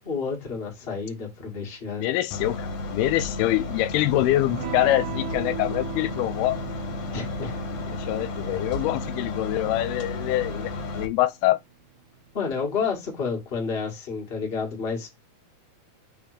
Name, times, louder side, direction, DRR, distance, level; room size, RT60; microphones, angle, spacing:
voice 1, 0.0-2.1 7.1-7.6 12.3-15.1, left 5 dB, 25° left, 1.4 m, -30 dB
voice 2, 2.0-6.6 7.9-11.6, left 15 dB, 85° left, 2.5 m, -25 dB
sound 1, 2.3-11.1, left 2 dB, 60° left, 2.4 m, -33 dB
Electric guitar / Strum, 4.5-12.8, right 8 dB, 70° right, 2.3 m, -40 dB
5.9 x 3.5 x 5.0 m
omnidirectional pair, 4.5 m